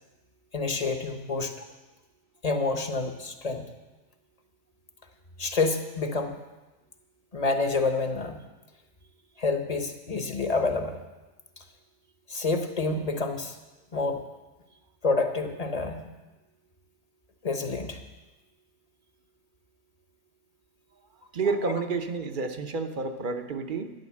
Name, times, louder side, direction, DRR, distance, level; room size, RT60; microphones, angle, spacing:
voice 1, 0.5-1.5 2.4-3.6 5.4-6.3 7.3-8.4 9.4-11.0 12.3-13.5 13.9-14.2 15.0-16.0 17.4-18.0 21.7-21.8, left 3 dB, 35° left, 6 dB, 1.1 m, -28 dB
voice 2, 21.3-23.9, right 4 dB, 45° right, 8 dB, 1.0 m, -30 dB
12.0 x 10.5 x 7.4 m, 1.1 s
omnidirectional pair, 1.2 m